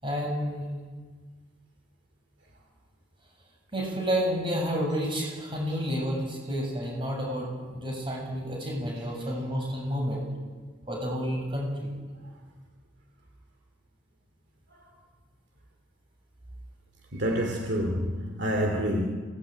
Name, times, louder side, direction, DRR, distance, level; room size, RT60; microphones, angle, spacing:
voice 1, 0.0-0.7 3.7-10.3 10.9-11.9, equal, 25° right, 0 dB, 7.4 m, -30 dB
voice 2, 17.1-19.1, equal, 60° right, 3 dB, 2.6 m, -27 dB
28.0 x 19.0 x 9.2 m, 1.5 s
head